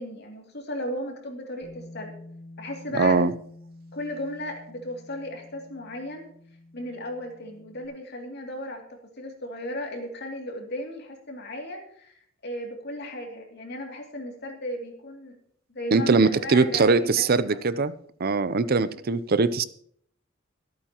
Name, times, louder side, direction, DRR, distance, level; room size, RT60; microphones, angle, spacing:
voice 1, 0.0-2.1 2.6-3.2 3.9-6.2 6.7-8.8 9.2-15.4 15.7-17.6, left 1 dB, 55° left, 2 dB, 2.7 m, -35 dB
Bass guitar, 1.6-7.9, left 2 dB, 85° left, 3.1 m, -48 dB
voice 2, 2.9-3.3 15.9-19.6, right 4 dB, 50° right, 14 dB, 0.6 m, -22 dB
24.0 x 8.7 x 3.0 m, 0.62 s
head